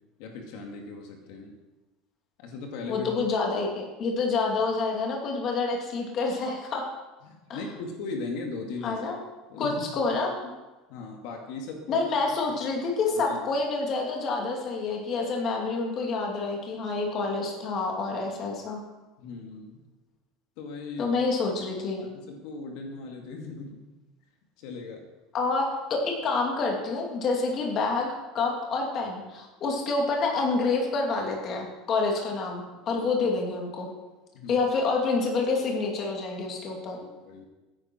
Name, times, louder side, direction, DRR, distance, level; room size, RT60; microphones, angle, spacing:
voice 1, 0.2-1.5 2.4-3.1 7.2-9.0 9.5-9.8 10.9-12.0 12.5-12.6 13.1-13.4 19.2-19.8 20.6-21.1 22.0-23.8 24.6-25.0 32.8-33.3 34.3-34.7 37.0-37.5, left 3 dB, 65° left, 2 dB, 2.3 m, -38 dB
voice 2, 2.9-6.8 7.5-7.6 8.8-9.2 9.6-10.3 11.9-18.8 21.0-22.0 25.3-28.1 28.3-33.9 34.5-37.0, left 3 dB, 35° left, 0 dB, 2.4 m, -28 dB
15.5 x 9.9 x 4.5 m, 1.1 s
cardioid pair, 160°, 0 cm